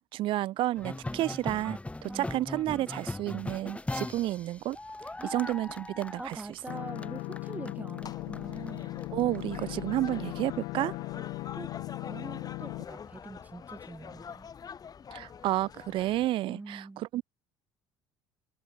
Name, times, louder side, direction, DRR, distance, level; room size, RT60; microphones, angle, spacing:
voice 1, 0.1-4.8 5.3-6.4 9.1-11.0 15.1-17.2, right 15 dB, 60° right, 0.6 m, -31 dB
sound 1, 0.8-9.7, left 2 dB, 15° left, 4.7 m, -40 dB
voice 2, 2.0-2.4 5.2-5.4 6.2-9.1 11.2-11.3 11.5-11.7 12.0-14.5 16.5-17.0, right 2 dB, 15° right, 5.6 m, -44 dB
sound 2, 6.7-12.8, left 23 dB, 75° left, 3.5 m, -38 dB
sound 3, 8.0-16.3, left 7 dB, 40° left, 7.8 m, -46 dB
hypercardioid pair, 75°, 10 cm